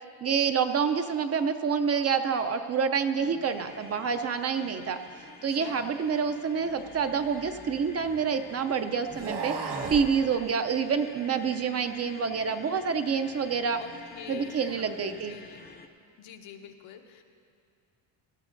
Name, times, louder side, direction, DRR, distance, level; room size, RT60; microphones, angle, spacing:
voice 1, 0.2-5.0 5.4-13.8 14.3-15.3, right 6 dB, 35° right, 8 dB, 0.4 m, -27 dB
voice 2, 3.1-3.5 5.4-5.9 10.2-10.5 11.2-11.5 13.8-15.6 16.2-17.2, left 7 dB, 80° left, 4 dB, 1.1 m, -47 dB
sound 1, 3.4-15.9, left 4 dB, 20° left, 0.6 m, -49 dB
sound 2, 6.8-8.3 9.0-10.1, right 4 dB, 60° right, 1.6 m, -36 dB
18.0 x 13.0 x 2.6 m, 2.3 s
cardioid pair, 130°, 46 cm